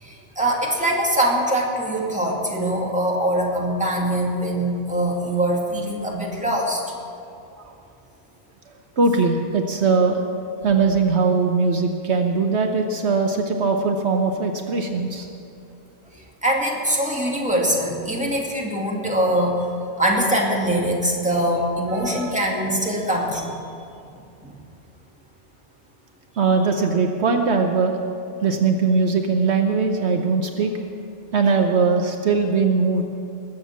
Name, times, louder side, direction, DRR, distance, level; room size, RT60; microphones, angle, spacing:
voice 1, 0.0-6.8 16.4-19.7 20.0-23.6 24.4-24.5, right 1 dB, 5° right, -2 dB, 2.2 m, -23 dB
voice 2, 9.0-10.2 10.6-15.3 21.9-22.5 26.4-28.0 28.4-30.7 31.3-33.0, right 4 dB, 65° right, 4 dB, 1.2 m, -20 dB
20.5 x 7.7 x 7.4 m, 2.6 s
omnidirectional pair, 1.2 m